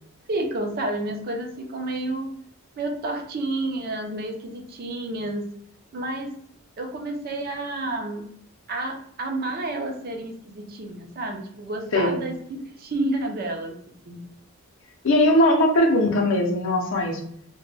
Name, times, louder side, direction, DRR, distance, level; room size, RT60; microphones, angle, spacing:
voice 1, 0.3-2.3 2.8-5.5 5.9-6.4 6.8-8.3 8.7-13.8 14.1-14.2, right 2 dB, 45° right, 3 dB, 0.4 m, -30 dB
voice 2, 15.0-17.2, left 1 dB, 60° left, 2 dB, 0.5 m, -20 dB
2.1 x 2.1 x 3.1 m, 0.69 s
head